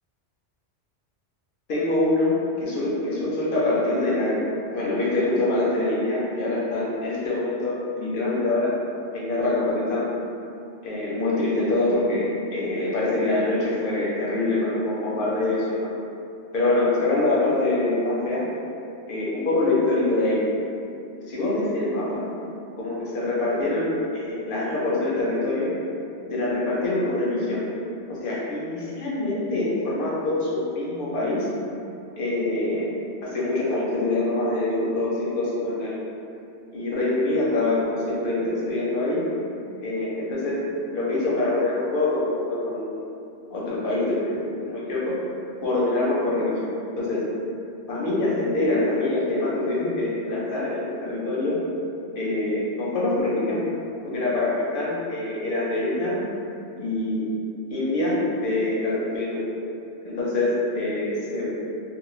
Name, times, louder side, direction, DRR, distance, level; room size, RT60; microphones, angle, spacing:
voice 1, 1.7-8.8 9.1-10.1 10.8-15.9 16.5-18.5 19.1-20.5 21.3-22.3 22.7-25.7 26.3-27.7 28.1-31.5 32.2-32.9 33.2-36.0 36.7-39.3 39.8-43.0 43.5-45.2 45.6-47.3 47.9-51.6 52.2-53.6 54.0-56.2 56.8-57.3 57.7-59.4 60.0-61.6, left 2 dB, 55° left, -6 dB, 0.7 m, -25 dB
2.4 x 2.1 x 3.0 m, 2.6 s
omnidirectional pair, 1.2 m